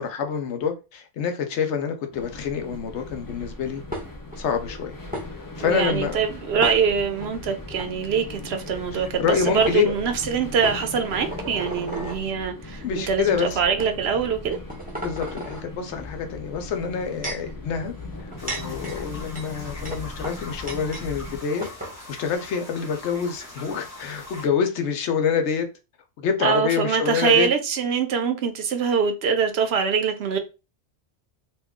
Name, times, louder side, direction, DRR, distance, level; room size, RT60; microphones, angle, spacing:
voice 1, 0.0-3.8 4.4-5.0 5.6-6.2 8.9-9.9 12.8-13.6 15.0-17.9 18.2-21.7 22.1-25.7 26.2-27.5, left 6 dB, 75° left, 0.9 m, -27 dB
sound 1, 2.1-21.4, left 2 dB, 30° left, 0.3 m, -39 dB
sound 2, 3.9-4.4 5.1-5.3 6.6-7.3 7.7-7.9 9.2-9.3 9.6-9.8 10.6-12.2 13.0-13.1 13.8-13.9 14.4-15.6 16.7-17.5 18.2-21.1 21.3-21.4 21.6-22.0, equal, 10° right, 0.8 m, -34 dB
voice 2, 5.6-14.6 26.4-30.4, right 6 dB, 65° right, 0.8 m, -24 dB
sound 3, 18.4-24.5, left 1 dB, 15° left, 1.2 m, -42 dB
2.9 x 2.3 x 3.5 m
omnidirectional pair, 1.2 m